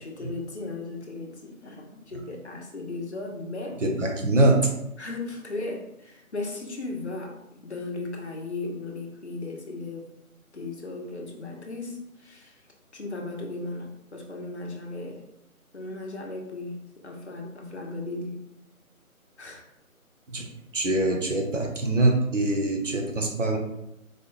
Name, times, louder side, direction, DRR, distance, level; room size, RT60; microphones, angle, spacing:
voice 1, 0.0-3.8 5.0-7.4 7.6-10.1 10.5-12.6 12.9-15.2 15.7-16.8 17.0-18.4 19.4-19.7, left 2 dB, 50° left, 1 dB, 0.7 m, -36 dB
voice 2, 3.8-4.7 20.3-20.4 20.7-23.6, right 2 dB, 60° right, 2 dB, 0.8 m, -23 dB
4.1 x 2.2 x 3.1 m, 0.85 s
figure-of-eight pair, 165°, 43 cm